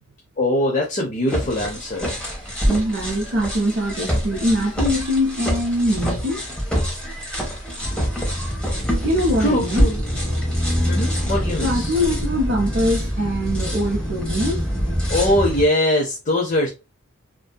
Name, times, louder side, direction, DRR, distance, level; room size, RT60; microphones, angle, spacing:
voice 1, 0.4-2.2 9.4-10.0 10.9-12.0 15.1-16.7, left 1 dB, 35° left, 0.5 m, -22 dB
sound 1, 1.3-15.7, equal, 5° left, 0.9 m, -25 dB
voice 2, 2.6-6.4 9.0-9.9 11.6-14.7, equal, 55° right, 0.5 m, -22 dB
2.6 x 2.5 x 2.2 m
head